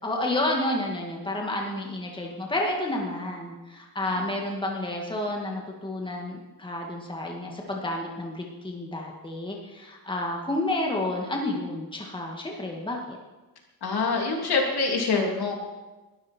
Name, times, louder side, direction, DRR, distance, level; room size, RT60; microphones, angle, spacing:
voice 1, 0.0-13.2, left 1 dB, 10° left, -1 dB, 2.2 m, -30 dB
voice 2, 13.8-15.5, left 4 dB, 70° left, 0 dB, 3.3 m, -26 dB
21.0 x 13.0 x 4.6 m, 1.2 s
wide cardioid pair, 170°, 40 cm